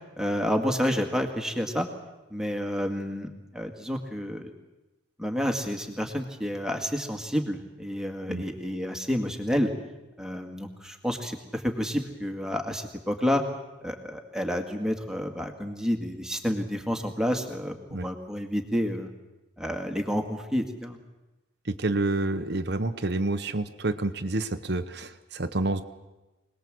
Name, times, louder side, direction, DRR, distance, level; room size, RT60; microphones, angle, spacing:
voice 1, 0.2-1.9 2.3-4.5 5.2-9.7 10.2-13.4 13.8-19.1 19.6-21.0, equal, 5° right, 4 dB, 2.0 m, -29 dB
voice 2, 21.7-25.8, right 2 dB, 55° right, 9 dB, 0.9 m, -28 dB
25.5 x 19.5 x 7.7 m, 1.1 s
head